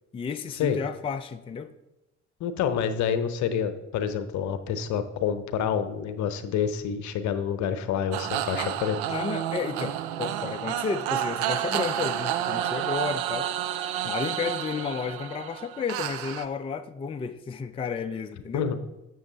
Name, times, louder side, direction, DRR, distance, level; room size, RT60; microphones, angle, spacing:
voice 1, 0.1-1.7 9.1-13.5 14.0-18.7, left 6 dB, 15° left, 0.4 m, -32 dB
voice 2, 2.4-9.0 18.5-18.8, left 8 dB, 55° left, 0.8 m, -28 dB
sound 1, 8.1-16.5, right 11 dB, 70° right, 0.5 m, -30 dB
7.7 x 6.2 x 4.0 m
figure-of-eight pair, 40°, 35 cm